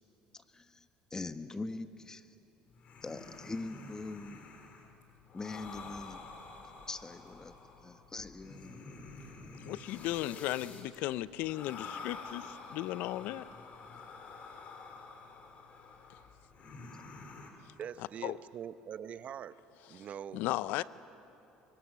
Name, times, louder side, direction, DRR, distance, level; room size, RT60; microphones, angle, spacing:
voice 1, 0.3-2.3 3.0-4.5 5.3-6.2 6.9-8.8, left 3 dB, 20° left, 9 dB, 1.3 m, -42 dB
sound 1, 2.7-17.5, left 4 dB, 50° left, 3.4 m, -49 dB
voice 2, 9.6-13.5 18.2-18.4 20.3-20.8, left 15 dB, 70° left, 17 dB, 0.6 m, -35 dB
voice 3, 17.8-19.6 19.9-20.4, right 9 dB, 50° right, 14 dB, 0.7 m, -43 dB
25.0 x 23.0 x 6.3 m, 2.9 s
supercardioid pair, 85°, 3 cm